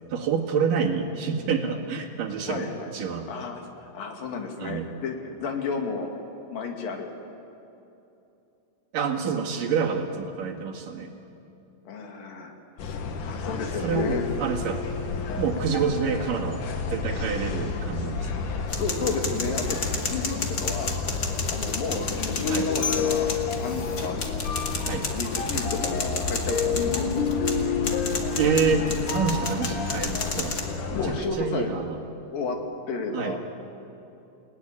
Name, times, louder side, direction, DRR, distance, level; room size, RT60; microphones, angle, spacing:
voice 1, 0.1-3.3 4.6-4.9 8.9-11.1 13.8-14.9 15.4-18.5 22.5-22.7 24.8-25.1 28.4-30.6 30.9-32.0 33.1-33.4, right 6 dB, 75° right, 1 dB, 3.6 m, -28 dB
voice 2, 2.5-2.9 3.3-6.1 6.5-7.1 11.9-12.6 12.8-14.3 18.8-19.8 20.0-20.9 21.5-23.3 23.6-24.2 24.9-27.1 30.9-31.7 32.3-32.6 32.9-33.4, left 4 dB, 85° left, 3 dB, 4.1 m, -32 dB
sound 1, 12.8-31.2, left 5 dB, 70° left, 3.0 m, -29 dB
sound 2, 18.7-30.6, left 3 dB, 35° left, 2.1 m, -32 dB
28.5 x 19.0 x 9.9 m, 2.9 s
omnidirectional pair, 3.9 m